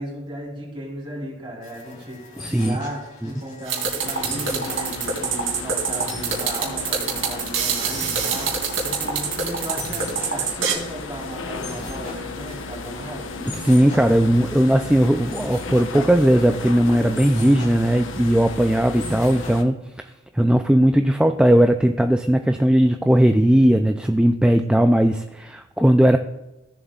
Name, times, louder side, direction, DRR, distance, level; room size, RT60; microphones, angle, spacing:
voice 1, 0.0-8.5 8.8-13.4, equal, 25° right, -3 dB, 3.3 m, -35 dB
sound 1, 1.6-19.5, left 2 dB, 40° left, 2.7 m, -40 dB
voice 2, 2.4-2.8 3.2-3.3 13.5-19.8 20.3-26.2, right 1 dB, 5° right, 6 dB, 0.3 m, -18 dB
sound 2, 3.7-10.7, right 6 dB, 85° right, 2.6 m, -25 dB
sound 3, 4.0-19.6, left 3 dB, 80° left, 0.9 m, -35 dB
16.0 x 7.3 x 2.4 m, 0.99 s
head